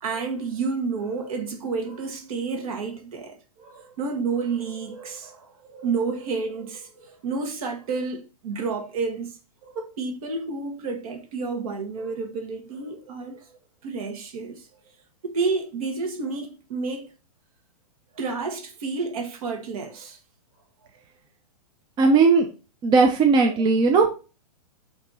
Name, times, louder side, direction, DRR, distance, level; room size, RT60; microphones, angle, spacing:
voice 1, 0.0-14.7 15.2-17.1 18.2-20.2, right 4 dB, 60° right, 1.7 m, -30 dB
voice 2, 22.0-22.5 22.8-24.1, right 4 dB, 20° right, 0.6 m, -17 dB
7.9 x 2.9 x 4.0 m
hypercardioid pair, 145°, 20 cm